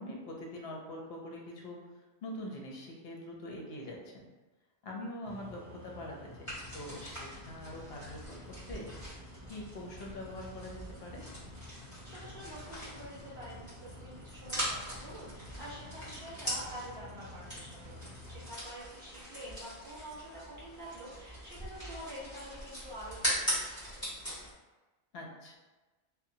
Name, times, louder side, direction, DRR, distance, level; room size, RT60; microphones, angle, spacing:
voice 1, 0.0-1.8 2.2-4.3 4.8-8.9 9.5-11.2 25.1-25.6, left 1 dB, 70° left, -1 dB, 0.8 m, -44 dB
sound 1, 5.2-18.5, left 1 dB, 45° right, 0.6 m, -51 dB
sound 2, 6.4-24.5, equal, 25° left, 1.5 m, -41 dB
voice 2, 12.0-24.1, equal, 25° right, -9 dB, 1.1 m, -47 dB
2.8 x 2.1 x 2.6 m, 1.2 s
omnidirectional pair, 1.1 m